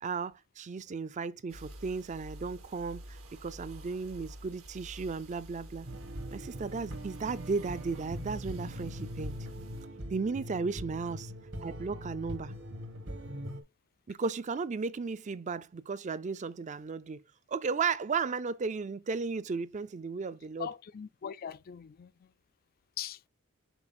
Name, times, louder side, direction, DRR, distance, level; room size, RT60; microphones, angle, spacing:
voice 1, 0.0-5.9 6.3-9.4 10.1-11.3 11.6-12.5 14.1-17.2 17.5-20.7, right 4 dB, 35° right, 0.4 m, -35 dB
sound 1, 1.5-9.9, right 1 dB, 80° right, 2.1 m, -49 dB
sound 2, 5.9-13.6, equal, 60° right, 1.4 m, -41 dB
voice 2, 20.6-22.3 23.0-23.2, left 9 dB, 45° left, 0.4 m, -41 dB
6.1 x 4.2 x 3.9 m
head